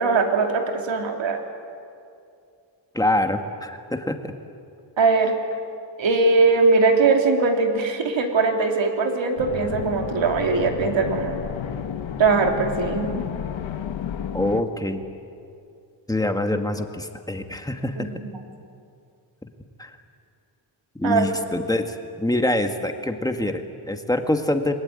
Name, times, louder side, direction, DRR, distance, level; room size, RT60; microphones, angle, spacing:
voice 1, 0.0-1.4 5.0-5.3 6.0-11.4 12.2-13.2 18.0-18.4 21.0-21.3, right 4 dB, 80° right, 3 dB, 3.2 m, -21 dB
voice 2, 2.9-4.3 14.3-15.0 16.1-18.1 19.4-19.5 19.8-20.0 20.9-24.7, left 1 dB, 10° left, 6 dB, 1.5 m, -25 dB
sound 1, 9.4-14.6, left 8 dB, 90° left, 1.5 m, -31 dB
28.0 x 21.5 x 9.5 m, 2.5 s
wide cardioid pair, 170°, 45 cm